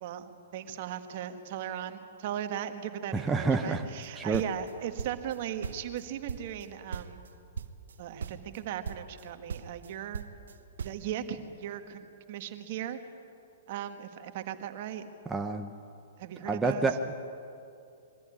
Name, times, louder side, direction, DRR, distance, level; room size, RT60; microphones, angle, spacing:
voice 1, 0.0-7.2 8.0-10.2 10.8-13.0 13.7-15.1 16.2-16.9, right 10 dB, 50° right, 8 dB, 1.6 m, -38 dB
voice 2, 3.1-3.9 4.2-4.4 15.3-15.7 16.5-17.1, right 3 dB, 10° right, 5 dB, 0.8 m, -28 dB
sound 1, 4.0-5.4 5.6-6.7 6.9-7.3 7.6-8.6 8.8-9.2 9.5-11.1, right 6 dB, 80° right, 0.9 m, -39 dB
22.5 x 14.0 x 9.9 m, 2.6 s
hypercardioid pair, 140°, 0 cm